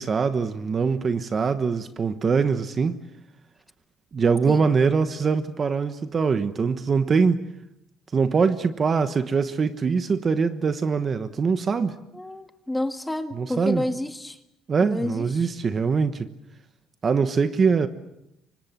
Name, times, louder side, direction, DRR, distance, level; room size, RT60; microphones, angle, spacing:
voice 1, 0.0-3.0 4.1-7.5 8.1-12.0 13.4-13.8 14.7-16.3 17.0-17.9, right 5 dB, 30° right, 1.2 m, -23 dB
voice 2, 12.1-14.4 14.8-15.5, left 1 dB, 5° left, 1.7 m, -30 dB
29.0 x 25.0 x 7.5 m
cardioid pair, 145°, 0 cm